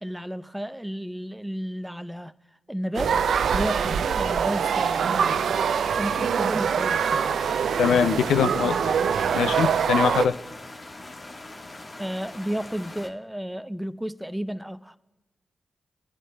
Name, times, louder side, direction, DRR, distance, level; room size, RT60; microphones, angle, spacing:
voice 1, 0.0-2.3 2.7-3.2 3.5-7.4 12.0-15.0, equal, 5° right, 0.5 m, -32 dB
sound 1, 2.9-10.3, right 7 dB, 80° right, 0.3 m, -24 dB
sound 2, 7.0-13.1, left 2 dB, 45° left, 1.3 m, -42 dB
voice 2, 7.8-8.8 9.3-10.4, left 7 dB, 90° left, 0.3 m, -22 dB
21.0 x 11.0 x 2.2 m
cardioid pair, 50°, 0 cm